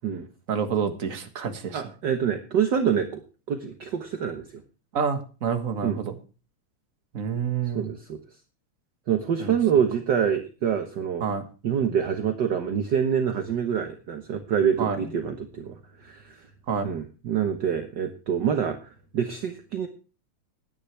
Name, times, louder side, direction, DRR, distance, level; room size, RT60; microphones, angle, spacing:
voice 1, 0.5-1.8 4.9-6.2 7.1-7.9 9.4-9.6 11.2-11.4 14.8-15.1 16.7-16.9, right 6 dB, 35° right, 7 dB, 1.5 m, -28 dB
voice 2, 1.7-3.2 3.5-4.6 5.8-6.0 7.7-8.2 9.1-11.2 11.6-16.5 16.8-19.9, right 8 dB, 55° right, 7 dB, 1.2 m, -26 dB
18.0 x 10.0 x 3.3 m, 0.34 s
omnidirectional pair, 3.4 m